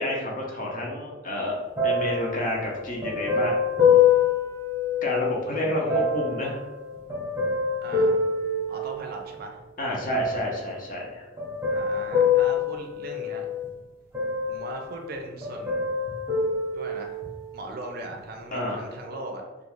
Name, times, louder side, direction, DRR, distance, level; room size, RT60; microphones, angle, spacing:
voice 1, 0.0-1.5 1.8-3.6 5.0-6.6 9.8-11.3 18.5-18.8, left 1 dB, 45° left, -2 dB, 0.6 m, -29 dB
sound 1, 1.8-5.4 5.9-9.4 10.1-10.7 11.4-13.7 14.1-15.2 15.4-17.5 18.1-18.2, left 5 dB, 15° right, 0.7 m, -25 dB
voice 2, 5.5-6.1 7.8-8.2 8.7-9.6 11.7-13.5 14.5-15.9 16.7-17.2 17.5-19.4, right 2 dB, 55° right, 2 dB, 0.4 m, -39 dB
2.4 x 2.3 x 3.0 m, 1.2 s
head